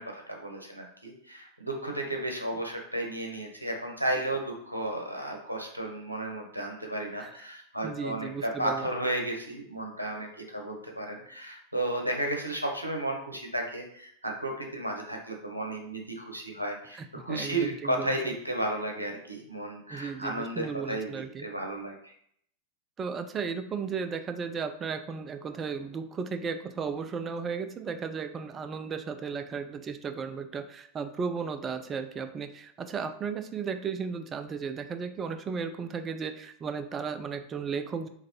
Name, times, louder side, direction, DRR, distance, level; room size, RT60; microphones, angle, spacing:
voice 1, 0.0-22.1, right 1 dB, 85° right, 1 dB, 0.8 m, -33 dB
voice 2, 7.8-8.9 17.3-18.2 19.9-21.5 23.0-38.1, right 5 dB, 25° right, 9 dB, 0.4 m, -35 dB
3.9 x 3.1 x 3.0 m, 0.68 s
figure-of-eight pair, 90°, 0 cm